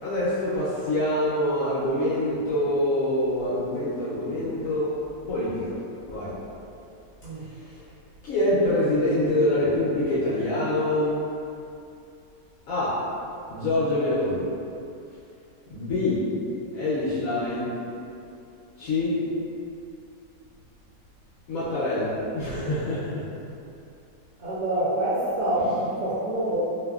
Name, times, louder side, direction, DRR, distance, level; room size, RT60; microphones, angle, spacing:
voice 1, 0.0-5.0 5.3-5.7 6.1-6.4 8.2-11.2 12.7-13.1 13.5-14.4 15.7-16.3 16.7-17.7 18.8-19.1 21.5-23.2 25.6-25.7, left 1 dB, 70° left, -9 dB, 0.8 m, -25 dB
voice 2, 24.4-26.6, right 1 dB, 75° right, -7 dB, 1.0 m, -26 dB
2.6 x 2.4 x 2.2 m, 2.6 s
omnidirectional pair, 1.8 m